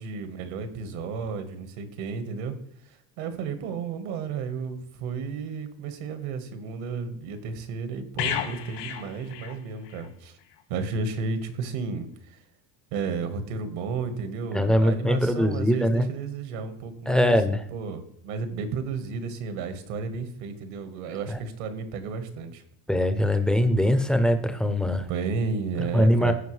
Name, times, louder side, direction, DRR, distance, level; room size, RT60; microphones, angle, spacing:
voice 1, 0.0-2.5 2.8-10.4 10.7-12.4 12.9-17.4 17.7-22.6 25.1-26.3, right 5 dB, 80° right, 8 dB, 1.6 m, -32 dB
sound 1, 8.2-10.1 10.4-10.6, left 9 dB, 85° left, 1.8 m, -33 dB
voice 2, 14.5-16.1 17.1-17.6 21.3-21.4 22.9-25.1 25.9-26.3, equal, ahead, 8 dB, 0.4 m, -22 dB
15.0 x 5.0 x 3.2 m, 0.69 s
cardioid pair, 155°, 40 cm